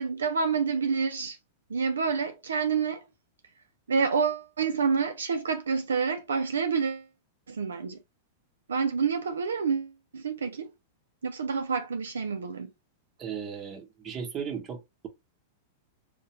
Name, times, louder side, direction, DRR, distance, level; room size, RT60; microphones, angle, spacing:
voice 1, 0.0-1.4 1.7-3.0 3.9-7.1 7.5-8.0 8.7-10.7 11.2-12.7, right 5 dB, 75° right, 0.3 m, -28 dB
voice 2, 13.2-15.1, right 7 dB, 25° right, 0.9 m, -36 dB
2.3 x 2.1 x 2.9 m
figure-of-eight pair, 95°, 0 cm